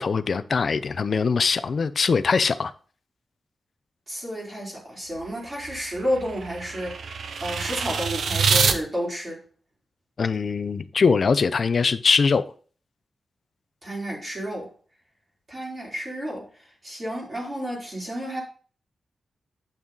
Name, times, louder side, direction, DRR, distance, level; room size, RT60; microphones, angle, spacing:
voice 1, 0.0-2.7 10.2-12.4, left 5 dB, 50° left, 0.6 m, -22 dB
voice 2, 4.1-7.1 7.4-9.4 13.8-14.7 15.5-18.4, equal, 25° right, 3.6 m, -31 dB
sound 1, 5.1-8.8, right 5 dB, 75° right, 1.0 m, -26 dB
8.9 x 6.2 x 4.0 m
wide cardioid pair, 155°, 0 cm